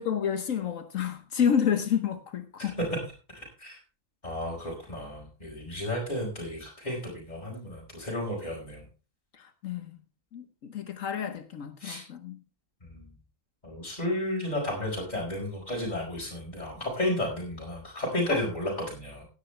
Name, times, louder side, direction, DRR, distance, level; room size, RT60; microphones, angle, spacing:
voice 1, 0.0-2.8 9.3-10.0 10.3-12.4 18.3-18.4, left 8 dB, 75° left, 1.4 m, -29 dB
voice 2, 4.2-8.8 11.8-12.0 12.9-13.1 13.6-19.2, left 1 dB, 30° left, 4.6 m, -33 dB
16.5 x 9.9 x 3.3 m
omnidirectional pair, 1.4 m